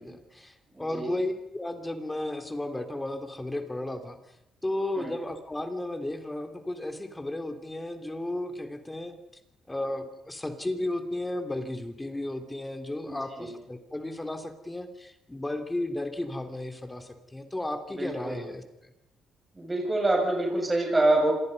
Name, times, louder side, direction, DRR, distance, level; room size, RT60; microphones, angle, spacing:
voice 1, 0.0-4.2 4.6-9.1 9.7-18.6, left 1 dB, 15° left, 6 dB, 3.3 m, -34 dB
voice 2, 0.7-1.1 4.9-5.2 13.0-13.5 18.0-18.4 19.6-21.3, right 2 dB, 20° right, 0 dB, 7.1 m, -26 dB
27.0 x 21.5 x 5.5 m, 0.85 s
cardioid pair, 90°, 0 cm